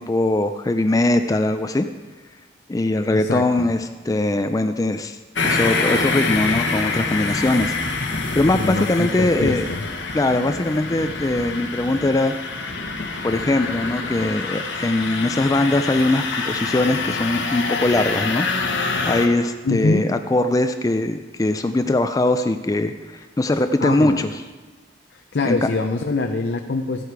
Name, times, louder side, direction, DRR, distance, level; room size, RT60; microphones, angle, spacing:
voice 1, 0.0-1.9 2.7-7.7 8.3-9.6 10.1-12.3 13.2-24.3 25.4-25.6, left 2 dB, 20° left, 8 dB, 0.4 m, -21 dB
voice 2, 3.1-3.7 8.5-9.8 19.6-20.1 23.8-24.3 25.1-27.0, left 3 dB, 60° left, 5 dB, 0.6 m, -24 dB
sound 1, 5.4-19.3, left 3 dB, 80° left, 1.2 m, -26 dB
14.0 x 8.1 x 4.7 m, 1.3 s
head